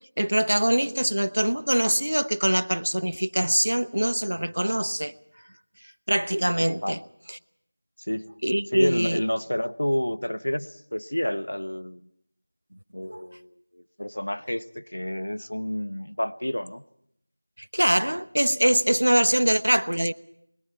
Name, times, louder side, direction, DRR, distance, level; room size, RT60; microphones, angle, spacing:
voice 1, 0.2-5.1 6.1-7.0 7.3-7.4 8.4-9.2 13.1-13.2 17.7-20.1, right 1 dB, 85° right, 1.0 m, -23 dB
voice 2, 8.7-12.0 12.9-16.8, left 1 dB, 80° left, 1.1 m, -29 dB
29.0 x 21.5 x 4.5 m
figure-of-eight pair, 175°, 0 cm